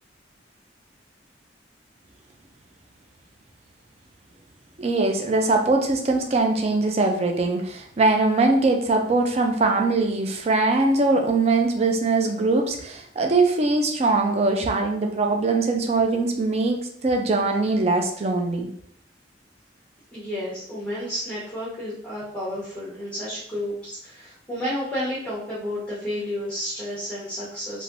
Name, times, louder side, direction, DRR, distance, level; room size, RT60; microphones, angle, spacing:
voice 1, 4.8-18.7, right 3 dB, 35° right, 3 dB, 0.4 m, -22 dB
voice 2, 20.1-27.8, equal, 5° left, -9 dB, 0.9 m, -31 dB
3.3 x 2.5 x 2.5 m, 0.66 s
head